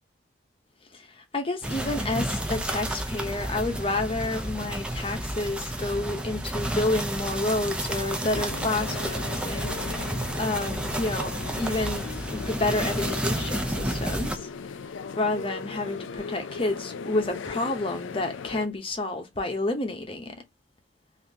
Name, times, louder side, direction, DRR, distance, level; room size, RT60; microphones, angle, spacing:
voice 1, 1.2-10.1 10.3-14.5 15.2-20.3, left 2 dB, 25° left, 0.8 m, -29 dB
sound 1, 1.6-14.4, right 1 dB, 5° right, 0.4 m, -31 dB
sound 2, 8.2-18.7, left 5 dB, 75° left, 0.4 m, -38 dB
3.5 x 2.6 x 2.7 m
head